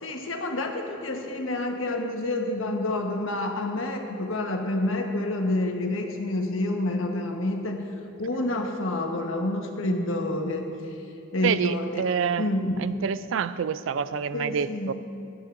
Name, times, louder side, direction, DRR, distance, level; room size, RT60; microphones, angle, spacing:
voice 1, 0.0-7.9 8.2-11.0 11.3-12.0 12.4-12.7 14.3-14.9, left 1 dB, 80° left, 3 dB, 1.2 m, -28 dB
voice 2, 11.4-12.4 12.8-14.9, right 6 dB, 70° right, 15 dB, 0.4 m, -27 dB
17.0 x 12.0 x 2.6 m, 2.6 s
head